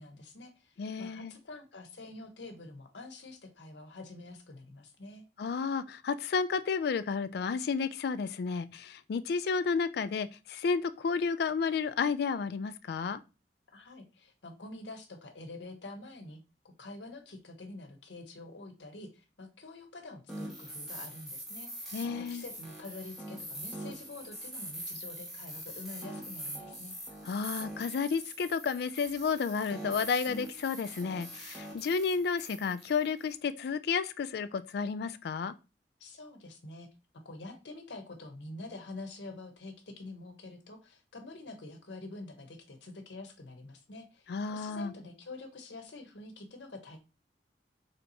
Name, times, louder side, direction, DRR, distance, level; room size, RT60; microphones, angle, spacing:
voice 1, 0.0-5.2 13.7-16.4 16.8-26.9 36.0-36.9 37.2-47.0, left 2 dB, 90° left, 0.9 m, -47 dB
voice 2, 0.8-1.3 5.4-13.2 21.9-22.4 27.3-35.5 44.3-44.9, left 5 dB, 65° left, 0.3 m, -32 dB
sound 1, 20.3-33.3, right 1 dB, ahead, 1.0 m, -43 dB
3.3 x 2.8 x 4.0 m
head